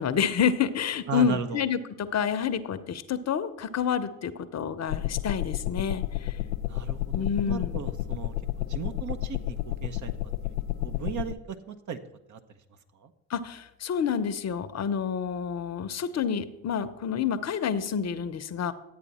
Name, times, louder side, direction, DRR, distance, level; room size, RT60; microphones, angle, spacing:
voice 1, 0.0-6.4 7.1-7.7 13.3-18.7, left 7 dB, 40° left, 12 dB, 0.8 m, -28 dB
voice 2, 1.1-1.6 6.7-10.1 10.4-12.0 12.3-12.4 13.0-13.1, right 6 dB, 45° right, 8 dB, 1.0 m, -36 dB
sound 1, 4.9-11.3, left 14 dB, 90° left, 0.6 m, -31 dB
11.5 x 8.4 x 4.2 m, 0.89 s
hypercardioid pair, 55°, 39 cm